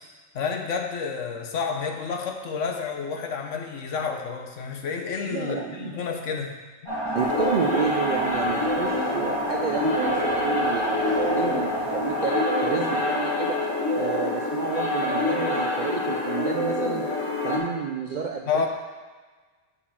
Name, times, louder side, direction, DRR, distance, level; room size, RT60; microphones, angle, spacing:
voice 1, 0.3-6.6 18.5-18.7, left 5 dB, 75° left, 3 dB, 1.2 m, -30 dB
voice 2, 5.2-5.9 7.1-13.6 13.9-17.1 17.4-18.7, right 6 dB, 60° right, 2 dB, 0.4 m, -30 dB
sound 1, 6.9-15.9, equal, 20° left, 2.4 m, -32 dB
sound 2, 7.1-17.6, left 2 dB, 55° left, 1.8 m, -26 dB
8.3 x 4.2 x 5.7 m, 1.4 s
omnidirectional pair, 1.3 m